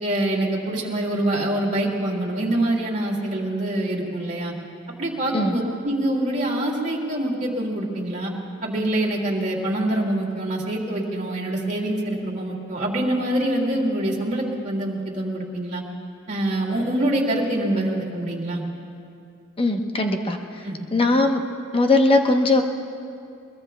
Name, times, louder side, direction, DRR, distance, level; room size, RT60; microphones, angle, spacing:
voice 1, 0.0-4.5 5.0-8.3 8.6-15.8 16.3-18.6 20.6-20.8, right 1 dB, 35° right, -3 dB, 2.2 m, -25 dB
voice 2, 19.6-20.4 20.9-21.4 21.7-22.6, left 2 dB, 25° left, 4 dB, 0.9 m, -19 dB
22.0 x 21.5 x 2.3 m, 2.5 s
head